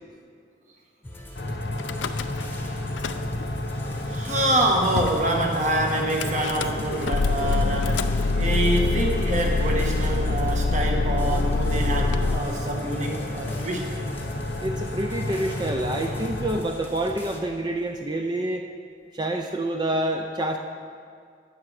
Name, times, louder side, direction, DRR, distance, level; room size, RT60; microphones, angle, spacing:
sound 1, 1.0-17.4, left 1 dB, 10° left, 1.0 m, -40 dB
sound 2, 1.3-16.6, left 1 dB, 65° left, 0.9 m, -32 dB
Car / Engine starting / Idling, 1.8-2.6 2.8-3.6 4.3-4.4 4.5-4.6 5.0-5.2 6.2-12.4, left 3 dB, 85° left, 0.5 m, -25 dB
voice 1, 4.1-13.8, right 1 dB, 40° right, 1 dB, 1.5 m, -26 dB
voice 2, 14.6-18.7 19.1-20.6, right 1 dB, 25° right, 3 dB, 0.5 m, -27 dB
12.5 x 8.8 x 4.9 m, 2.2 s
head